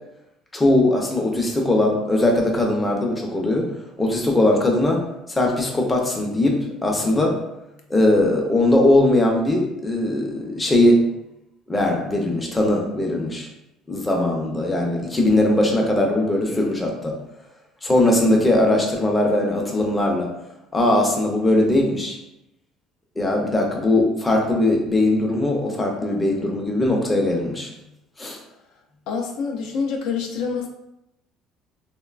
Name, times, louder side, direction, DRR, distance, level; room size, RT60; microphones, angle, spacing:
voice 1, 0.5-7.4 7.9-11.0 11.7-13.5 13.9-17.1 17.8-20.3 20.7-22.2 23.2-27.7 28.2-28.4, left 1 dB, 15° left, 1 dB, 0.5 m, -20 dB
voice 2, 29.1-30.7, left 5 dB, 70° left, 2 dB, 0.4 m, -26 dB
3.1 x 2.1 x 2.3 m, 0.86 s
cardioid pair, 130°, 0 cm